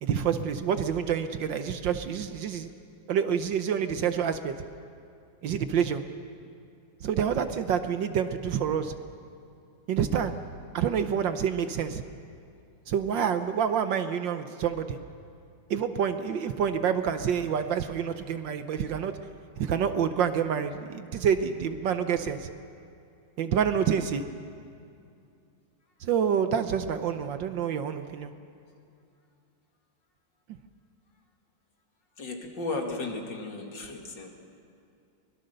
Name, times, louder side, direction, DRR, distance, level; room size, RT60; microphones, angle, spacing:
voice 1, 0.0-2.7 3.1-4.5 5.4-6.0 7.0-8.9 9.9-10.4 10.7-12.0 12.9-15.0 15.7-19.1 19.6-22.5 23.4-24.3 26.0-28.3, right 7 dB, 65° right, 9 dB, 1.4 m, -27 dB
voice 2, 32.2-34.3, left 3 dB, 55° left, 2 dB, 2.8 m, -35 dB
24.0 x 21.5 x 6.7 m, 2.5 s
omnidirectional pair, 2.3 m